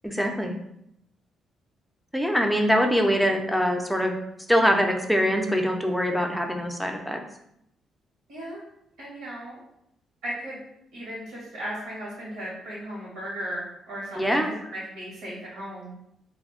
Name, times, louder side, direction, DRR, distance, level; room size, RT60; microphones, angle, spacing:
voice 1, 0.0-0.6 2.1-4.1 4.5-7.2 14.2-14.5, equal, ahead, 3 dB, 0.4 m, -23 dB
voice 2, 8.3-8.6 9.0-9.6 10.2-10.6 10.9-15.9, equal, 90° right, -7 dB, 0.9 m, -36 dB
2.3 x 2.1 x 3.5 m, 0.77 s
cardioid pair, 90°, 0 cm